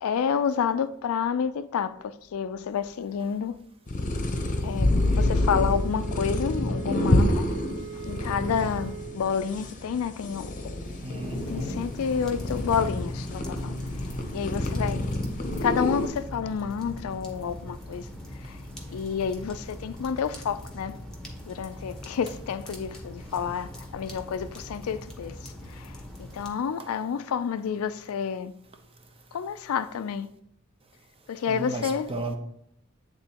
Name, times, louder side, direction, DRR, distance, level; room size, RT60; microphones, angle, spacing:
voice 1, 0.0-3.5 4.6-7.5 8.1-10.7 11.5-13.8 14.3-15.0 15.6-18.0 18.4-18.5 18.9-20.9 21.5-25.4 25.8-25.9 26.2-28.5 29.3-30.3 31.3-32.1, left 7 dB, 75° left, 0.4 m, -29 dB
sound 1, 3.9-16.1, left 1 dB, 40° left, 0.8 m, -28 dB
Wind instrument woodwind instrument, 5.1-9.3, right 9 dB, 50° right, 0.3 m, -41 dB
voice 2, 11.0-11.8 31.5-32.4, right 2 dB, 25° right, 0.8 m, -34 dB
sound 2, 11.2-26.5, left 1 dB, 5° left, 1.0 m, -40 dB
8.9 x 3.7 x 2.9 m
head